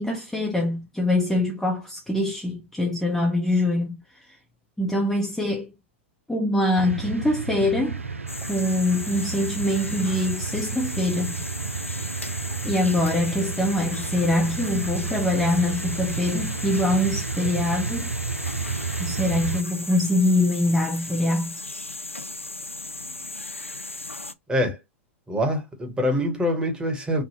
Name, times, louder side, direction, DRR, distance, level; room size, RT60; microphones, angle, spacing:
voice 1, 0.0-4.2 4.8-5.7 6.3-8.0 8.5-11.4 12.6-18.1 19.0-21.6, left 1 dB, 5° left, 0.6 m, -24 dB
sound 1, 6.8-19.6, right 4 dB, 85° right, 0.4 m, -31 dB
sound 2, 8.3-24.3, left 2 dB, 90° left, 0.4 m, -36 dB
voice 2, 24.5-24.8 25.3-27.2, equal, 10° right, 1.1 m, -24 dB
3.5 x 2.1 x 2.9 m
figure-of-eight pair, 100°, 7 cm